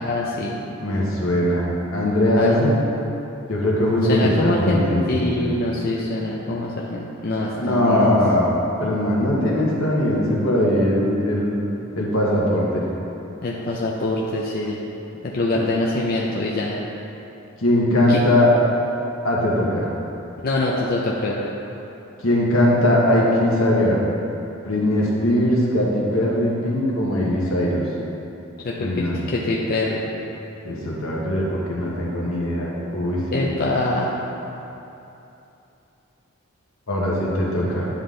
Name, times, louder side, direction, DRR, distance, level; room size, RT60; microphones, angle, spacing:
voice 1, 0.0-0.6 2.4-2.6 4.1-8.1 13.4-14.8 15.2-16.8 18.1-18.2 20.4-21.4 28.6-30.0 33.3-34.1, left 2 dB, 45° left, -3 dB, 0.5 m, -24 dB
voice 2, 0.8-1.7 1.9-2.7 3.5-5.5 7.6-8.5 8.8-11.6 12.0-12.8 17.6-18.5 19.2-19.9 22.2-24.0 24.6-27.8 28.8-29.2 30.6-33.7 36.9-37.9, left 1 dB, 75° left, -4 dB, 1.3 m, -20 dB
9.9 x 3.7 x 3.8 m, 2.9 s
head